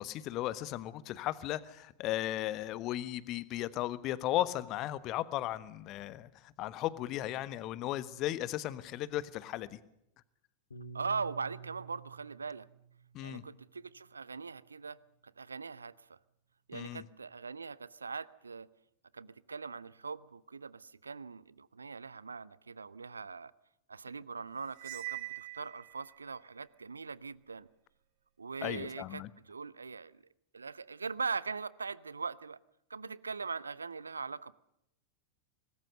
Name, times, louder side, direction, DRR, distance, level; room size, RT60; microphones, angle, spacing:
voice 1, 0.0-9.8 13.1-13.4 16.7-17.0 28.6-29.3, left 14 dB, 40° left, 16 dB, 1.3 m, -36 dB
Piano, 10.7-15.1, right 5 dB, 75° left, 2.4 m, -51 dB
voice 2, 10.9-12.7 13.2-15.0 15.4-15.9 16.7-18.7 19.1-23.5 23.9-27.7 28.4-30.2 30.5-32.6 32.9-34.5, right 5 dB, 75° right, 21 dB, 0.7 m, -41 dB
Cymbal, 24.8-26.2, right 20 dB, 50° right, 1.3 m, -43 dB
25.5 x 20.0 x 6.7 m, 0.81 s
figure-of-eight pair, 90°, 0 cm